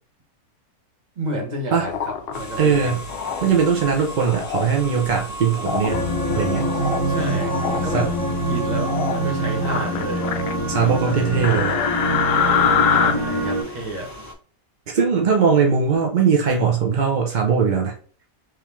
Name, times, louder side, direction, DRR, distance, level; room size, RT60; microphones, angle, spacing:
voice 1, 1.2-3.0 7.1-8.1 8.5-10.3 10.8-11.9 13.0-14.1, right 1 dB, 35° right, 1 dB, 0.9 m, -31 dB
sound 1, 1.8-2.4 3.1-3.4 4.2-4.7 5.6-6.0 6.5-7.0 7.4-7.8 8.8-9.2 9.6-10.5 11.4-13.1, left 7 dB, 80° left, 0.5 m, -23 dB
sound 2, 2.3-14.3, right 1 dB, 20° left, 0.5 m, -36 dB
voice 2, 2.6-3.0 3.4-6.0 6.3-6.7 7.9-8.1 10.7-11.7 14.9-17.9, right 6 dB, 60° right, 1 dB, 0.5 m, -20 dB
sound 3, 5.9-13.6, right 1 dB, 40° left, 1.9 m, -24 dB
3.5 x 3.2 x 3.0 m, 0.43 s
omnidirectional pair, 1.6 m